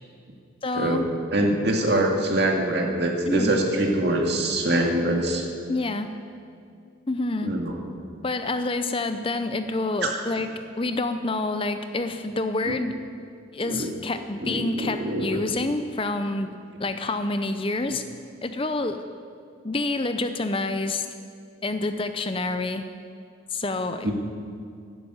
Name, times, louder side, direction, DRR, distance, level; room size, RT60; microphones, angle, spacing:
voice 1, 0.6-1.1 3.2-3.5 5.7-6.1 7.1-7.5 8.2-13.0 13.5-16.5 16.8-18.0 18.4-19.1 19.6-21.1 21.6-22.8 23.5-24.1, left 2 dB, 25° left, 9 dB, 0.6 m, -27 dB
voice 2, 1.3-5.5 7.4-7.8 10.0-10.1 12.7-12.8 13.6-13.9 14.4-15.4 24.0-24.1, right 1 dB, 55° right, 1 dB, 2.3 m, -24 dB
12.0 x 11.5 x 9.2 m, 2.3 s
head